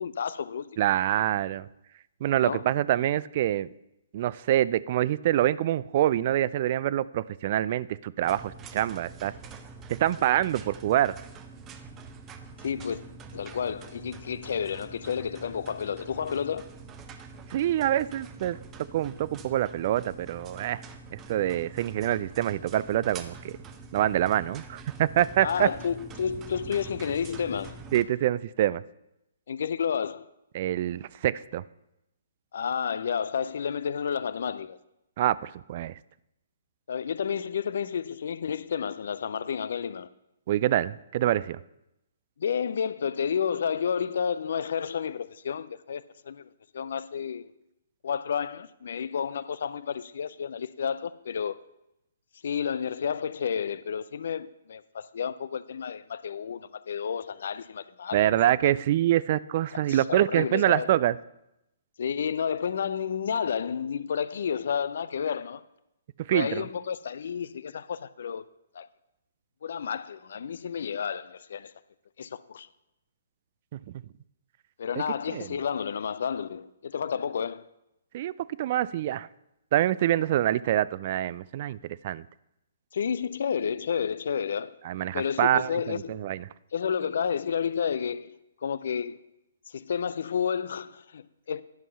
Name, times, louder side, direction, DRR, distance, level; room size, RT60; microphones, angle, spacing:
voice 1, 0.0-0.7 2.4-2.6 12.6-13.0 13.3-16.7 25.4-27.8 29.5-30.3 32.5-34.8 36.9-40.1 42.4-47.5 48.0-51.6 52.4-58.2 59.7-60.9 62.0-65.6 66.3-68.4 68.7-68.9 69.6-71.7 72.2-72.7 74.8-77.7 82.9-84.7 85.1-86.3 86.7-89.2 89.7-91.6, left 7 dB, 65° left, 0.5 m, -31 dB
voice 2, 0.8-1.7 2.2-3.7 4.1-9.3 10.0-11.2 17.5-18.6 18.9-20.8 21.1-23.6 23.9-25.7 27.9-28.8 30.5-31.6 35.2-35.9 40.5-41.6 58.1-61.1 66.3-66.6 73.7-73.8 75.3-75.5 78.1-78.3 78.6-79.3 79.7-81.8 82.0-82.2 84.8-86.4, right 12 dB, 45° right, 0.3 m, -25 dB
sound 1, 8.2-28.0, right 4 dB, 20° right, 0.8 m, -45 dB
11.0 x 5.4 x 5.6 m
figure-of-eight pair, 130°, 0 cm